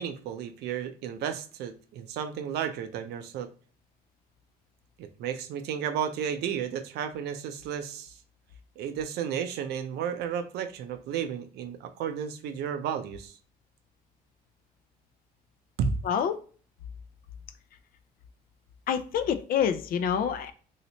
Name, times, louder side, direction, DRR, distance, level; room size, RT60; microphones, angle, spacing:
voice 1, 0.0-3.5 5.0-8.2 8.8-13.4 15.8-15.9, right 8 dB, 75° right, 8 dB, 0.5 m, -33 dB
voice 2, 16.0-16.4 18.9-20.5, left 8 dB, 60° left, 10 dB, 0.4 m, -27 dB
3.1 x 2.8 x 2.8 m, 0.41 s
cardioid pair, 110°, 17 cm